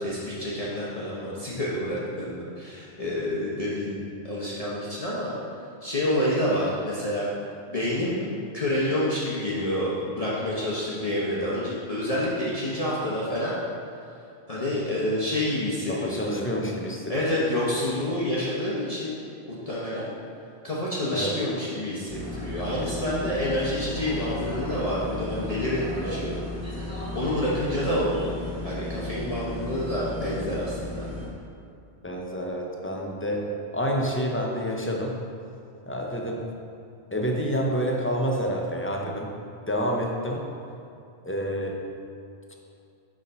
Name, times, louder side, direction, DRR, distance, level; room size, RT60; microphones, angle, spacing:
voice 1, 0.0-5.3 5.8-7.3 7.7-13.6 14.5-16.5 17.1-19.1 19.5-20.1 20.6-26.4 27.1-28.3 28.6-31.1, left 1 dB, 35° left, -8 dB, 0.9 m, -28 dB
voice 2, 15.9-17.5 21.1-21.4 26.0-26.4 32.0-35.2 35.9-36.4 37.1-39.3 39.7-40.5 41.2-41.8, equal, 20° left, 0 dB, 0.4 m, -28 dB
sound 1, 22.1-31.3, left 2 dB, 25° right, 1.5 m, -34 dB
6.4 x 3.6 x 5.4 m, 2.5 s
omnidirectional pair, 1.1 m